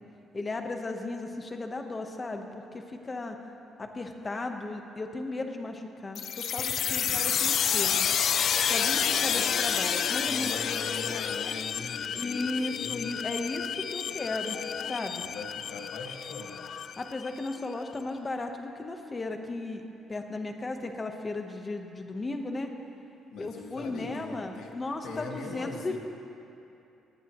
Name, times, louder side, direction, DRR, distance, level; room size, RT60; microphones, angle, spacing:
voice 1, 0.3-3.4 3.8-8.1 8.6-10.5 12.1-14.6 14.9-15.2 17.0-19.8 20.1-22.7 23.4-26.0, left 2 dB, 20° left, 4 dB, 1.0 m, -35 dB
sound 1, 6.1-17.6, left 8 dB, 50° left, 0.4 m, -29 dB
voice 2, 7.0-7.5 8.8-9.7 10.2-13.2 15.1-16.9 23.3-24.8 25.0-26.0, left 4 dB, 65° left, 1 dB, 1.7 m, -42 dB
19.5 x 18.0 x 3.1 m, 2.8 s
cardioid pair, 160°, 0 cm